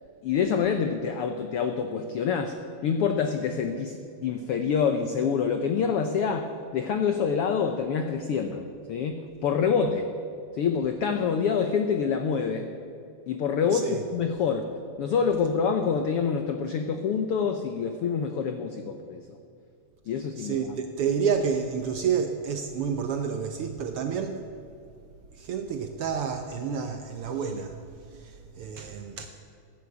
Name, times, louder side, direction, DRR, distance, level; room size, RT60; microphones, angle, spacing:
voice 1, 0.2-2.6 2.8-10.1 10.5-12.7 13.3-14.7 15.0-19.4 20.1-20.7, left 6 dB, 85° left, 1.2 m, -26 dB
voice 2, 13.7-14.0 20.4-24.5 25.3-29.3, right 6 dB, 90° right, 1.2 m, -29 dB
15.5 x 10.5 x 8.3 m
omnidirectional pair, 3.6 m